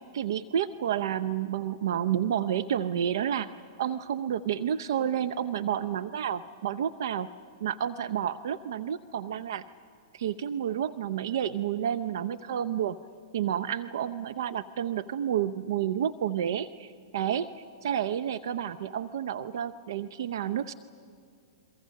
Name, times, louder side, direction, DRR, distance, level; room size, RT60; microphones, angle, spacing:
voice 1, 0.0-3.5 3.8-7.3 7.6-9.6 10.1-13.0 13.3-20.7, right 9 dB, 70° right, 12 dB, 0.6 m, -30 dB
29.0 x 23.0 x 6.5 m, 2.4 s
hypercardioid pair, 125°, 2 cm